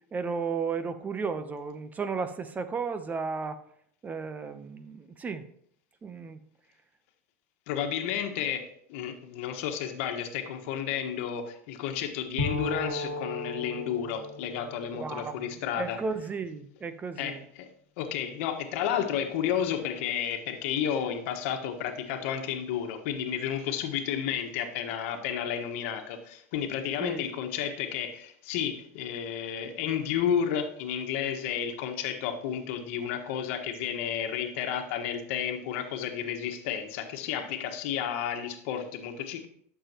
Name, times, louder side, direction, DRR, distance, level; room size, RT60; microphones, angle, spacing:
voice 1, 0.1-3.6 4.0-5.5 6.0-6.4 14.9-15.4 15.7-17.4 27.0-27.3, right 5 dB, 20° right, 11 dB, 0.7 m, -34 dB
voice 2, 7.7-16.0 17.2-17.7 18.0-39.5, left 9 dB, 65° left, 5 dB, 1.4 m, -32 dB
Bowed string instrument, 12.4-16.1, left 2 dB, 85° right, 2.2 m, -36 dB
12.0 x 6.8 x 2.9 m, 0.65 s
supercardioid pair, 120°, 8 cm